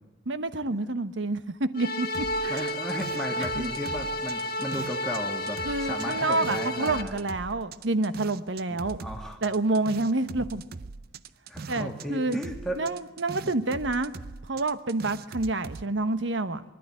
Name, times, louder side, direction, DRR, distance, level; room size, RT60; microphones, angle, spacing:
voice 1, 0.3-2.7 3.5-3.7 5.6-9.0 9.4-10.6 11.7-12.4 12.8-14.1 14.4-16.6, right 2 dB, 70° right, 12 dB, 1.1 m, -28 dB
sound 1, 1.7-7.0, left 1 dB, 50° left, 1.5 m, -31 dB
sound 2, 2.1-5.2 5.5-12.1 12.3-15.8, right 4 dB, 50° right, 0.6 m, -41 dB
voice 2, 2.5-7.2 8.7-9.4 10.4-10.5 11.5-12.8 13.4-13.5, equal, 5° left, 1 dB, 2.0 m, -35 dB
24.0 x 11.5 x 9.4 m, 1.2 s
head